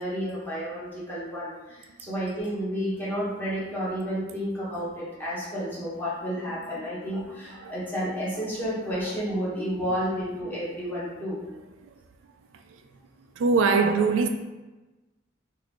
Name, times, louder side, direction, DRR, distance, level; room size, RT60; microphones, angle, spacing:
voice 1, 0.0-11.4, equal, 10° left, 1.2 m, -31 dB
voice 2, 13.4-14.3, right 4 dB, 80° right, 0.3 m, -22 dB
4.1 x 2.6 x 3.0 m
head